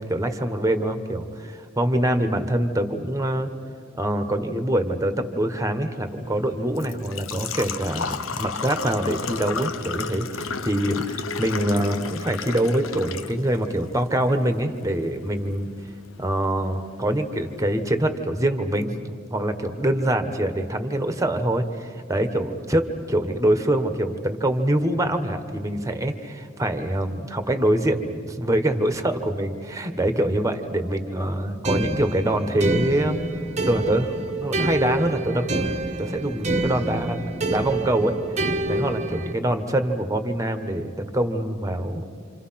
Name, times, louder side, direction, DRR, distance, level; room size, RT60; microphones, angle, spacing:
voice 1, 0.0-3.5 4.0-15.7 16.2-33.2 33.6-34.1 34.4-35.5 36.0-37.2 37.5-38.2 38.7-42.0, right 1 dB, 15° right, 8 dB, 1.4 m, -24 dB
Engine / Trickle dribble / Fill (with liquid), 6.1-18.0, left 5 dB, 80° left, 0.9 m, -34 dB
sound 1, 31.6-39.3, right 2 dB, 35° right, 1.2 m, -27 dB
28.0 x 27.5 x 5.9 m, 2.1 s
head